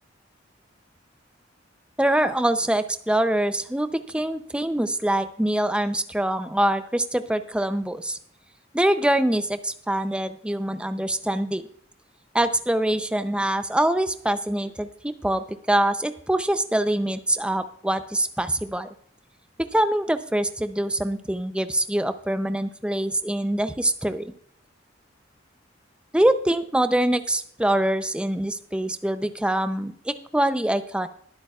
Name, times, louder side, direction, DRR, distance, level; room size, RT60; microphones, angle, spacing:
voice 1, 2.0-8.2 8.7-11.6 12.3-18.9 19.6-24.3 26.1-31.1, right 1 dB, 5° right, 10 dB, 0.6 m, -24 dB
21.0 x 8.5 x 2.4 m, 0.63 s
head